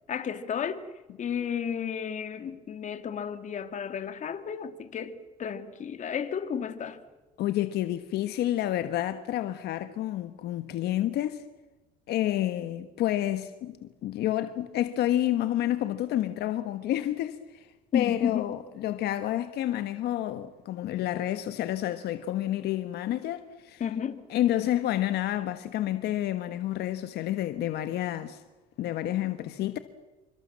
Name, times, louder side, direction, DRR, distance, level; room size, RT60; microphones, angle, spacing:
voice 1, 0.1-0.8 1.2-7.0 17.9-18.5 23.8-24.2, left 8 dB, 45° left, 2.4 m, -32 dB
voice 2, 7.4-11.4 12.1-17.7 17.9-23.8 24.3-28.4 28.8-29.8, left 13 dB, 75° left, 1.4 m, -29 dB
28.0 x 25.0 x 7.6 m
cardioid pair, 110°, 17 cm